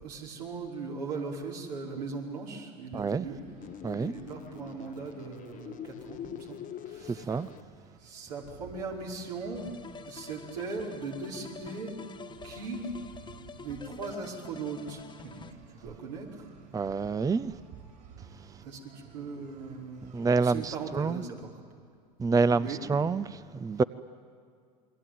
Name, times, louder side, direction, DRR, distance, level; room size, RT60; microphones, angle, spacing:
voice 1, 0.0-3.5 3.9-7.5 8.0-9.7 10.0-12.0 12.4-12.9 13.6-16.5 18.6-21.6 22.6-22.9, right 4 dB, 80° right, 5.2 m, -39 dB
voice 2, 2.9-3.3 3.8-4.1 7.3-7.5 16.7-17.5 20.1-21.2 22.2-23.8, right 4 dB, 15° right, 0.6 m, -27 dB
sound 1, 3.3-21.2, right 6 dB, 65° right, 7.9 m, -54 dB
sound 2, 3.6-7.6, left 10 dB, 40° left, 1.0 m, -44 dB
sound 3, 9.5-15.5, left 5 dB, 20° left, 1.5 m, -47 dB
28.0 x 22.0 x 9.2 m
hypercardioid pair, 85°, 21 cm